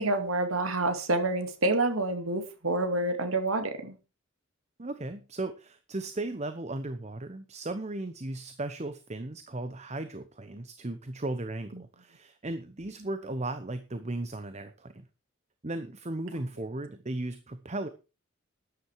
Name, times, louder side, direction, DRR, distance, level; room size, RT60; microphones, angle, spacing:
voice 1, 0.0-4.0, right 2 dB, 80° right, 7 dB, 2.7 m, -28 dB
voice 2, 4.8-15.1 15.6-17.9, right 2 dB, 35° right, 10 dB, 1.0 m, -36 dB
13.0 x 9.9 x 4.7 m, 0.31 s
head